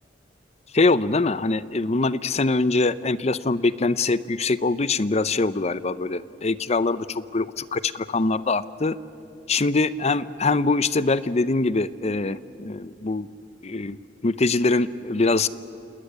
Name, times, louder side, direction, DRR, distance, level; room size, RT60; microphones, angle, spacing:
voice 1, 0.7-9.0 9.5-13.3 13.6-14.0 14.2-15.5, left 3 dB, 35° left, 16 dB, 0.6 m, -23 dB
28.0 x 19.0 x 9.9 m, 2.5 s
head